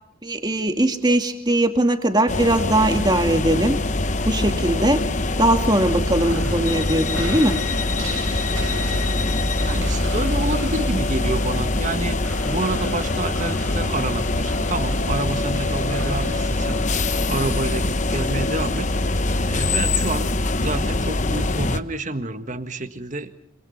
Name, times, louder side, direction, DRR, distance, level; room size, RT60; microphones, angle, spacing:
voice 1, 0.2-3.8 4.3-5.0 5.4-7.6, right 1 dB, 20° right, 6 dB, 2.3 m, -20 dB
sound 1, 2.3-21.8, left 2 dB, 35° left, 0.9 m, -23 dB
voice 2, 6.2-6.5 9.5-18.9 19.4-23.3, right 2 dB, 35° right, 8 dB, 1.7 m, -29 dB
sound 2, 6.2-17.6, right 2 dB, 85° right, 3.3 m, -36 dB
26.5 x 26.0 x 5.6 m, 0.75 s
head